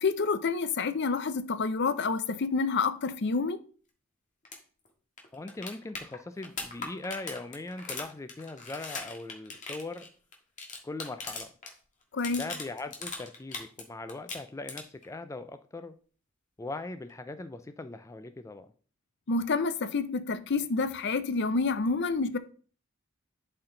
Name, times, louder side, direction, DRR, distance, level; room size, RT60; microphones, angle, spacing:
voice 1, 0.0-3.6 12.1-12.4 19.3-22.4, left 4 dB, 60° left, 0.6 m, -28 dB
sound 1, 4.4-4.6 4.9-5.0 5.2-11.7 12.0-13.8 14.1-15.0 17.1-17.2, left 4 dB, 40° left, 1.7 m, -40 dB
voice 2, 5.3-10.1 10.8-11.5 12.3-15.9 16.6-18.7, left 2 dB, 15° left, 0.3 m, -40 dB
11.5 x 4.4 x 3.8 m
head